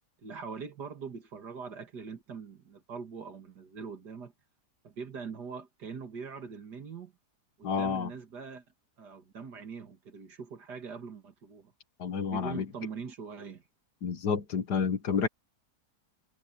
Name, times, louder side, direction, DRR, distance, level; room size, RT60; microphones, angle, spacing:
voice 1, 0.2-4.3 4.8-7.1 7.6-8.6 9.0-11.7 12.2-13.6, right 5 dB, 85° right, 2.7 m, -42 dB
voice 2, 7.6-8.1 12.0-12.6 14.0-15.3, left 6 dB, 90° left, 2.1 m, -29 dB
omnidirectional pair, 1.7 m